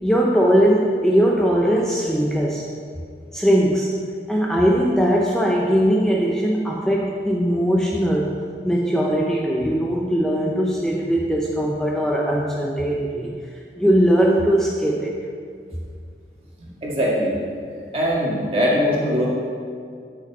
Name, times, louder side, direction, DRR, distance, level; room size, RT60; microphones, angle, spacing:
voice 1, 0.0-2.6 3.3-3.9 4.3-8.3 8.6-13.4 13.8-15.1, equal, 5° left, -3 dB, 0.6 m, -20 dB
voice 2, 16.6-17.3 17.9-19.3, equal, 35° right, -5 dB, 2.1 m, -21 dB
12.5 x 6.6 x 4.2 m, 2.2 s
head